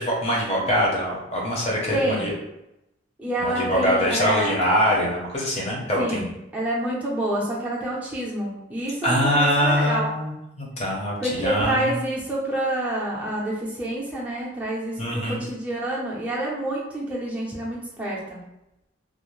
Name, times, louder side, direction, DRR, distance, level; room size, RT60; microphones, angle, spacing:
voice 1, 0.0-2.3 3.4-6.3 9.0-11.9 15.0-15.4, equal, 30° left, -3 dB, 0.7 m, -23 dB
voice 2, 1.9-2.4 3.2-4.5 6.0-10.1 11.2-18.4, right 1 dB, 5° right, -6 dB, 0.5 m, -28 dB
2.5 x 2.0 x 3.0 m, 0.88 s
head